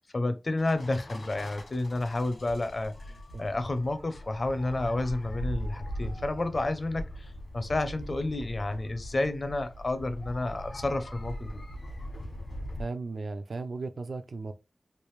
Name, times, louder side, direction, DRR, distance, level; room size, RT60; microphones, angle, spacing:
voice 1, 0.1-2.9 3.4-11.6, left 2 dB, 45° left, 0.5 m, -30 dB
sound 1, 0.6-12.9, equal, 80° left, 1.3 m, -40 dB
voice 2, 12.8-14.5, right 3 dB, 75° right, 0.4 m, -36 dB
3.3 x 2.5 x 3.1 m
wide cardioid pair, 85°, 0 cm